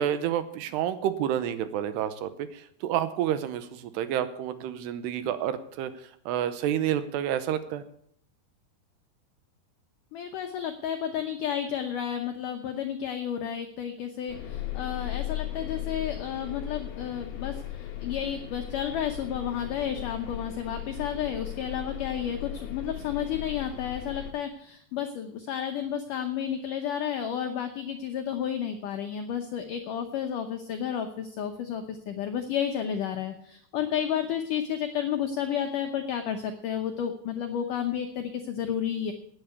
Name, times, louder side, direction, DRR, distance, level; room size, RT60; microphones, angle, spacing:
voice 1, 0.0-7.8, right 10 dB, 80° right, 12 dB, 2.8 m, -29 dB
voice 2, 10.1-39.1, left 9 dB, 85° left, 5 dB, 1.8 m, -31 dB
sound 1, 14.3-24.3, left 11 dB, 65° left, 3.4 m, -37 dB
10.5 x 9.2 x 8.4 m, 0.66 s
omnidirectional pair, 5.0 m